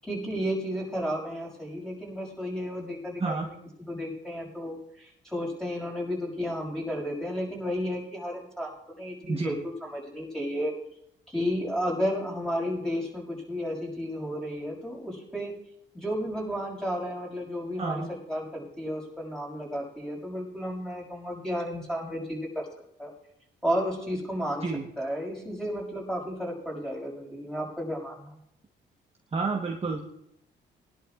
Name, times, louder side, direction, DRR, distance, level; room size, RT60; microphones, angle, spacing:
voice 1, 0.0-8.7 9.0-10.7 11.3-15.5 15.9-22.7 23.0-23.1 23.6-24.6 25.0-28.3, equal, 5° left, -2 dB, 6.2 m, -32 dB
voice 2, 9.2-9.6 17.8-18.1 24.6-24.8 29.3-30.0, right 4 dB, 30° right, 0 dB, 1.2 m, -29 dB
22.5 x 11.5 x 2.5 m, 0.75 s
cardioid pair, 90°, 20 cm